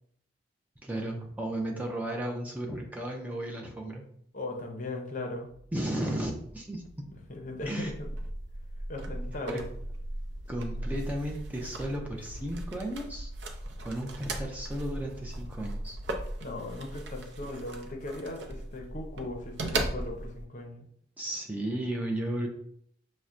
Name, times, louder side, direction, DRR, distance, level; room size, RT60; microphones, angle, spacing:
voice 1, 0.8-4.0 5.7-6.8 7.7-7.9 9.5-9.6 10.5-13.3 13.8-16.0 21.2-22.5, right 1 dB, 10° right, 0 dB, 0.5 m, -34 dB
voice 2, 4.3-5.5 7.3-8.0 8.9-9.6 16.4-20.8, left 2 dB, 40° left, 2 dB, 0.6 m, -38 dB
sound 1, 5.4-16.3, equal, 80° left, 0.3 m, -49 dB
sound 2, 7.8-20.5, right 1 dB, 70° right, 0.5 m, -38 dB
5.6 x 2.1 x 2.5 m, 0.68 s
head